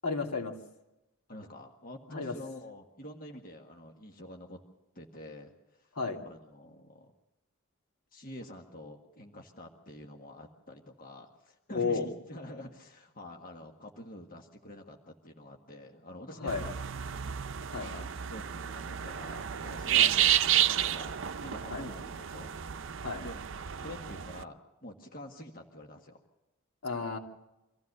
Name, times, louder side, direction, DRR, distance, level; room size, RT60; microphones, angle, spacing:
voice 1, 0.0-0.5 2.1-2.3 5.9-6.2 11.7-12.1 16.4-16.6 17.7-17.9 20.0-20.1 21.7-21.9 23.0-23.2 26.8-27.2, left 4 dB, 85° left, 1 dB, 2.8 m, -32 dB
voice 2, 1.3-4.6 5.0-5.5 6.2-7.1 8.1-16.8 17.8-22.6 23.2-23.4 23.8-26.2, left 1 dB, 40° left, 2 dB, 1.7 m, -47 dB
sound 1, 16.5-24.4, right 11 dB, 60° right, 0.6 m, -31 dB
25.0 x 15.0 x 6.8 m, 0.95 s
head